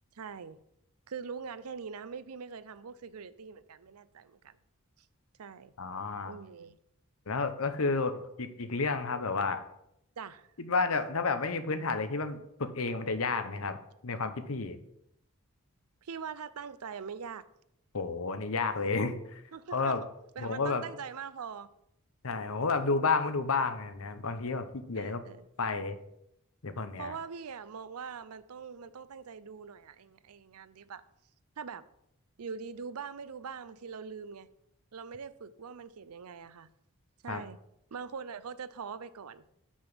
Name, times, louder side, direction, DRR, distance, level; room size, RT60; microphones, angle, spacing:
voice 1, 0.1-0.6 1.1-4.6 5.0-5.1 5.4-5.7 6.2-6.8 10.2-10.5 16.0-17.4 19.5-20.1 20.4-21.7 24.9-25.5 27.0-31.0 31.6-31.8 32.4-34.5 34.9-36.7 37.2-37.6 37.9-39.4, right 6 dB, 85° right, 0.6 m, -42 dB
voice 2, 5.8-6.4 7.3-9.6 10.6-14.8 17.9-19.4 19.7-20.0 20.4-20.8 22.2-25.2 25.6-26.0 26.6-27.2 37.3-37.4, left 4 dB, 70° left, 0.9 m, -31 dB
6.2 x 6.0 x 7.1 m
head